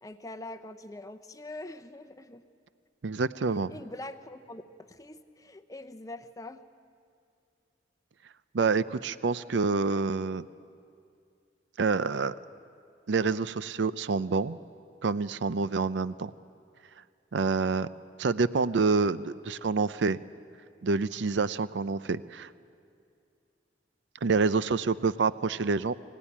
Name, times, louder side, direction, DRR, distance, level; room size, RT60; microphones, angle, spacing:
voice 1, 0.0-2.4 3.5-6.6, left 2 dB, 20° left, 8 dB, 0.8 m, -43 dB
voice 2, 3.0-3.7 8.5-10.5 11.8-12.3 13.1-14.6 15.0-16.3 17.3-17.9 18.2-20.2 20.8-22.5 24.2-25.9, right 4 dB, 70° right, 15 dB, 0.5 m, -27 dB
26.0 x 15.0 x 10.0 m, 2.4 s
head